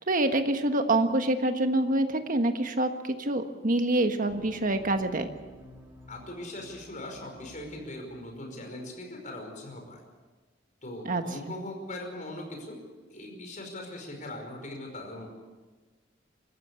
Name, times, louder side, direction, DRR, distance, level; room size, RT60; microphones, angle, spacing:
voice 1, 0.0-5.3 11.0-11.2, right 2 dB, 45° right, 7 dB, 1.5 m, -26 dB
sound 1, 4.3-8.2, equal, 15° right, 3.1 m, -51 dB
voice 2, 6.1-10.0 10.8-12.8 13.1-15.3, left 1 dB, 45° left, 3 dB, 5.2 m, -40 dB
25.0 x 14.0 x 8.3 m, 1.3 s
head